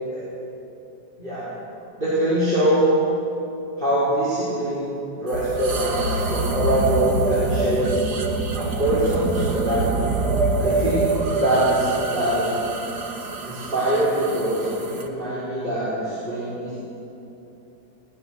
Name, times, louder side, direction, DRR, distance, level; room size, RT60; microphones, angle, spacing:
voice 1, 1.2-1.5 2.0-2.9 3.8-7.9 8.5-10.1 10.6-12.6 13.4-16.8, right 1 dB, 30° right, -10 dB, 5.1 m, -23 dB
sound 1, 5.3-15.1, right 3 dB, 70° right, 2.0 m, -25 dB
20.0 x 19.5 x 6.6 m, 2.9 s
omnidirectional pair, 1.9 m